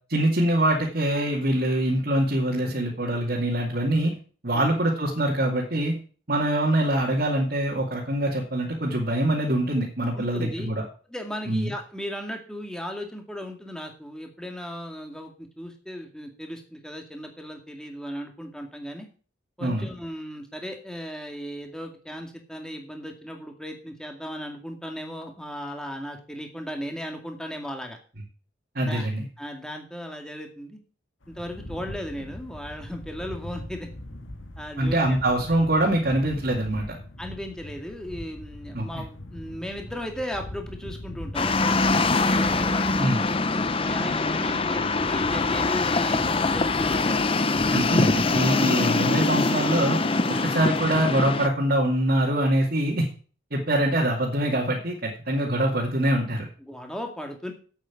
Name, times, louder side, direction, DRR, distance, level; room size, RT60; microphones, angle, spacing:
voice 1, 0.1-4.1 4.4-5.9 6.3-10.8 11.5-11.7 19.6-19.9 28.7-29.3 34.8-37.0 38.7-38.8 43.0-43.2 47.7-50.0 50.4-53.1 53.5-56.5, right 1 dB, 50° right, -3 dB, 2.4 m, -24 dB
voice 2, 10.1-10.7 11.1-19.1 19.6-28.0 28.8-29.1 29.4-30.8 31.3-33.9 34.6-35.0 37.2-43.4 43.8-47.4 50.3-50.5 56.6-57.5, equal, 5° left, 3 dB, 2.1 m, -36 dB
sound 1, 31.2-48.5, left 1 dB, 90° left, 1.8 m, -40 dB
sound 2, 41.3-51.5, left 3 dB, 30° left, 0.7 m, -23 dB
8.7 x 8.4 x 7.2 m, 0.40 s
head